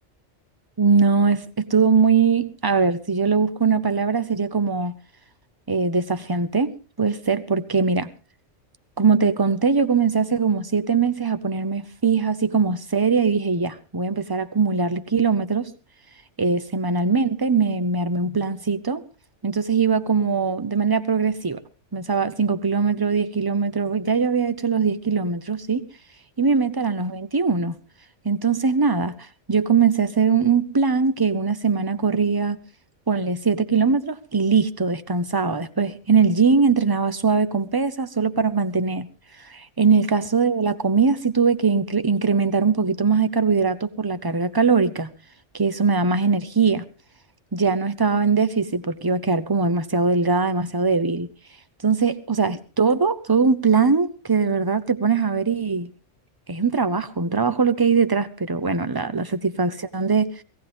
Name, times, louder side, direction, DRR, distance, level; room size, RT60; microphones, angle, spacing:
voice 1, 0.8-5.0 5.7-8.1 9.0-15.7 16.4-19.0 19.4-21.6 21.9-25.9 26.4-27.8 28.2-32.6 33.1-39.1 39.4-45.1 45.5-46.8 47.5-51.3 51.8-55.9 56.5-60.3, right 5 dB, 25° right, 0.7 m, -21 dB
18.5 x 16.0 x 3.5 m
omnidirectional pair, 1.2 m